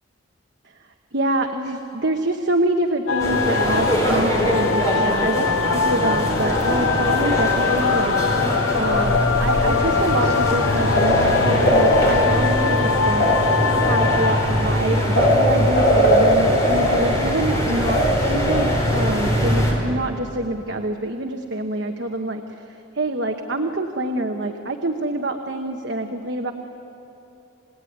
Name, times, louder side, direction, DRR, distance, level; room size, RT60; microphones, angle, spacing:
voice 1, 0.8-13.3 13.8-26.5, right 1 dB, 60° right, 4 dB, 1.2 m, -26 dB
sound 1, 3.1-15.7, left 6 dB, 75° left, 0.5 m, -24 dB
sound 2, 3.2-19.7, equal, 15° left, 4.7 m, -23 dB
sound 3, 8.9-19.6, equal, 55° left, 3.2 m, -21 dB
28.0 x 18.5 x 9.4 m, 2.9 s
head